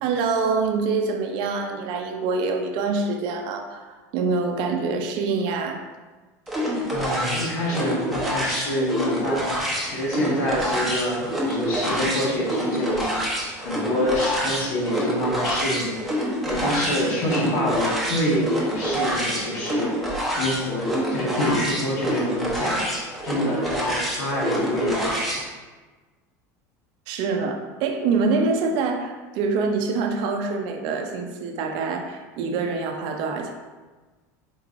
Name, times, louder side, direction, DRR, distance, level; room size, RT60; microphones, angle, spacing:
voice 1, 0.0-3.9 4.1-5.8 27.1-33.5, right 4 dB, 60° right, 4 dB, 0.5 m, -25 dB
sound 1, 6.5-25.4, equal, ahead, 0.9 m, -27 dB
voice 2, 6.9-9.5 9.8-13.1 13.6-16.0 16.4-19.9 20.4-22.8 23.2-25.2, left 1 dB, 70° left, -4 dB, 1.4 m, -26 dB
4.5 x 3.1 x 2.5 m, 1.3 s
supercardioid pair, 115°, 9 cm